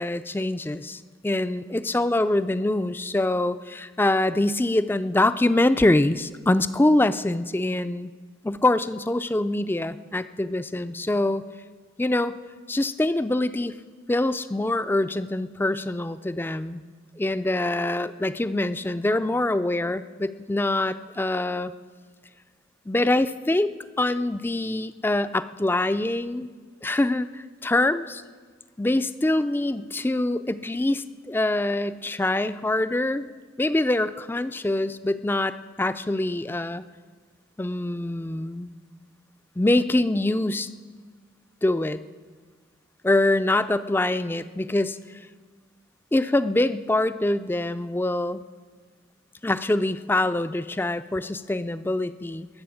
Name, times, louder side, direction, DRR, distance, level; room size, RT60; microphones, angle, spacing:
voice 1, 0.0-8.1 8.4-11.4 12.0-12.4 12.7-13.8 14.1-16.8 17.2-21.7 22.9-26.5 26.8-28.2 28.8-33.3 33.6-36.8 37.6-38.7 39.6-40.7 41.6-42.0 43.0-45.0 46.1-48.4 49.4-52.5, left 1 dB, 10° left, 13 dB, 0.3 m, -24 dB
21.0 x 7.8 x 7.1 m, 1.5 s
head